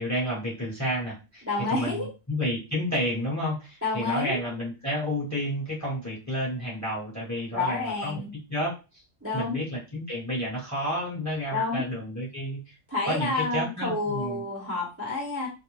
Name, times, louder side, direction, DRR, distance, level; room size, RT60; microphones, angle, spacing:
voice 1, 0.0-1.4 1.7-8.2 8.5-9.0 9.3-12.8 13.1-14.4, equal, 15° left, -5 dB, 0.9 m, -31 dB
voice 2, 1.5-2.1 3.8-4.4 7.5-8.3 9.2-9.6 11.5-11.8 12.9-15.5, left 3 dB, 15° right, -5 dB, 0.8 m, -29 dB
2.4 x 2.2 x 3.0 m, 0.30 s
omnidirectional pair, 1.2 m